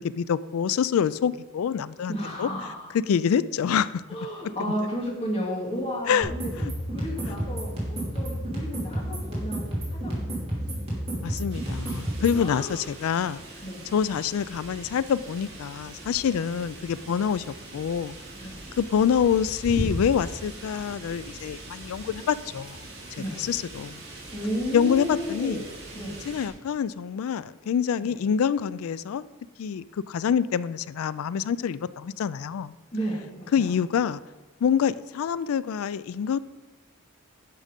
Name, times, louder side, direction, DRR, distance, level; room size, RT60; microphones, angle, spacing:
voice 1, 0.2-2.1 2.4-2.5 2.9-4.0 6.1-6.3 6.6-6.7 11.2-13.4 13.9-18.2 18.8-22.8 23.4-24.0 24.7-25.6 26.3-29.2 29.6-32.7 33.5-34.2 34.6-36.4, left 7 dB, 80° left, 17 dB, 0.3 m, -26 dB
voice 2, 2.1-2.9 4.1-6.5 6.9-10.5 12.3-12.8 13.6-13.9 17.0-17.2 18.4-18.6 23.2-23.4 24.3-26.2 28.0-28.1 32.9-33.7, equal, 25° left, -2 dB, 2.3 m, -33 dB
sound 1, 6.2-12.4, right 1 dB, 30° right, 2.9 m, -31 dB
sound 2, 11.5-26.5, right 1 dB, 50° right, 2.3 m, -40 dB
10.5 x 6.2 x 5.1 m, 1.1 s
head